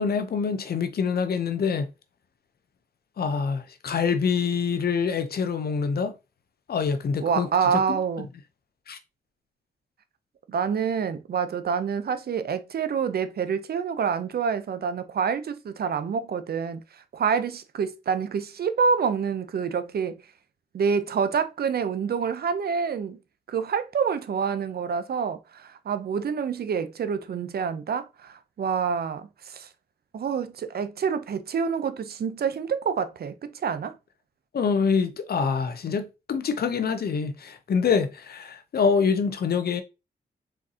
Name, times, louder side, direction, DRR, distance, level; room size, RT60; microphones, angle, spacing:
voice 1, 0.0-1.9 3.2-6.1 6.7-8.0 8.9-9.0 34.5-39.8, left 5 dB, 65° left, 0.7 m, -25 dB
voice 2, 7.2-8.3 10.5-20.2 20.7-23.2 23.5-29.7 30.1-34.0, right 6 dB, 65° right, 0.6 m, -27 dB
4.4 x 3.7 x 2.8 m
cardioid pair, 65°, 17 cm